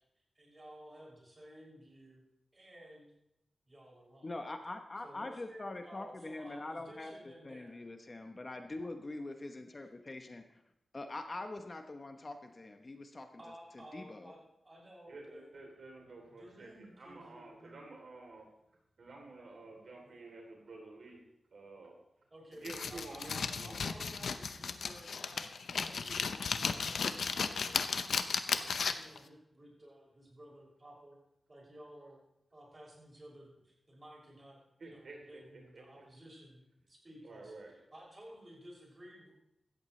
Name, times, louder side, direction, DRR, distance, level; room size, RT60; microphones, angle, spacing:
voice 1, 0.3-2.2 2.5-3.1 3.7-4.3 5.0-7.8 8.8-8.9 13.4-14.4 14.6-15.5 16.3-17.8 20.0-20.1 22.3-25.4 25.7-31.2 31.5-32.2 32.5-37.5 37.9-39.3, right 1 dB, 25° right, -3 dB, 6.4 m, -55 dB
voice 2, 4.2-7.2 7.4-10.5 10.9-13.4 13.7-14.3, left 2 dB, 35° left, 6 dB, 0.9 m, -43 dB
voice 3, 15.1-18.5 19.0-21.2 21.5-22.0 22.5-23.8 25.7-26.2 34.8-35.4 35.7-36.0 37.2-37.7, right 3 dB, 65° right, 0 dB, 3.3 m, -50 dB
sound 1, 22.6-29.2, left 5 dB, 90° left, 0.7 m, -35 dB
16.5 x 13.5 x 3.2 m, 0.81 s
wide cardioid pair, 115°, 0 cm